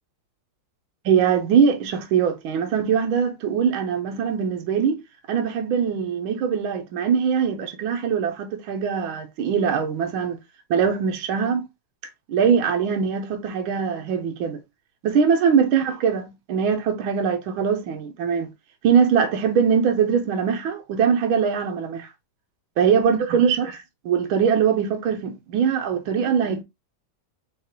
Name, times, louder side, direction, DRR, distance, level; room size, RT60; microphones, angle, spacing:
voice 1, 1.0-5.0 5.3-10.4 10.7-11.7 12.3-14.6 15.0-18.5 18.8-22.1 22.8-26.6, right 7 dB, 75° right, 1.6 m, -22 dB
6.7 x 2.4 x 2.9 m
omnidirectional pair, 2.3 m